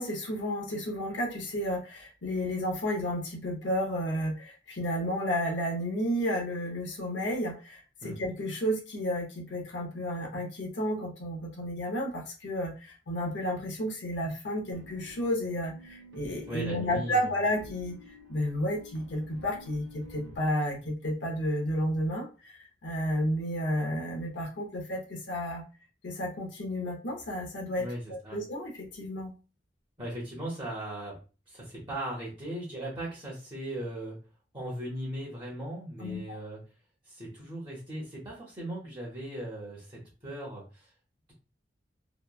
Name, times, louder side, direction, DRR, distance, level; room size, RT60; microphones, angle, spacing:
voice 1, 0.0-18.0 18.3-22.5 22.8-25.6 26.0-29.3 36.0-36.4, equal, 75° left, 0 dB, 0.7 m, -32 dB
sound 1, 14.7-20.4, left 2 dB, 85° right, 0.5 m, -50 dB
voice 2, 16.5-17.3 27.8-28.4 30.0-31.2 31.5-34.2 34.5-36.6 37.0-40.9, right 1 dB, 25° right, -5 dB, 0.8 m, -38 dB
2.9 x 2.1 x 2.2 m, 0.33 s
head